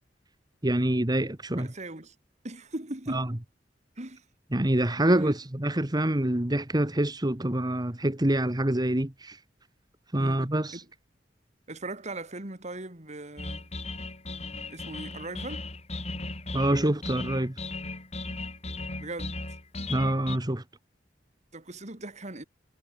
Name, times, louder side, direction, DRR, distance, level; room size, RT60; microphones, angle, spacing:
voice 1, 0.6-1.7 3.1-3.2 4.5-9.4 10.1-10.8 16.5-17.5 19.9-20.6, right 1 dB, 25° right, 1.5 m, -26 dB
voice 2, 1.6-2.1 2.4-3.3 4.0-4.2 5.0-5.3 10.2-10.8 11.7-13.6 14.7-15.7 19.0-19.4 21.5-22.4, right 2 dB, 40° right, 2.7 m, -39 dB
sound 1, 13.4-20.4, left 2 dB, 40° left, 6.9 m, -37 dB
head